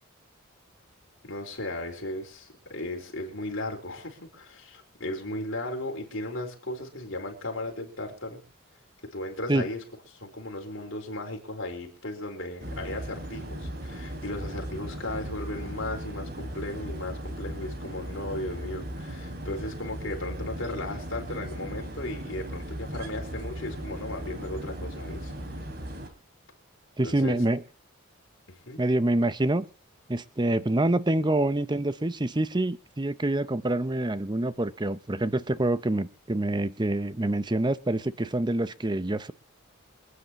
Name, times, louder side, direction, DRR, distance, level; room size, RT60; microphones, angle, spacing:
voice 1, 1.2-8.4 9.1-9.8 10.1-25.6 27.0-27.5 28.5-28.8, left 1 dB, 60° left, 2 dB, 4.4 m, -36 dB
sound 1, 12.6-26.1, right 1 dB, 50° right, 3.0 m, -37 dB
voice 2, 27.0-27.6 28.8-29.6 30.1-39.3, right 1 dB, 20° right, 14 dB, 0.7 m, -26 dB
27.0 x 9.7 x 3.0 m, 0.35 s
head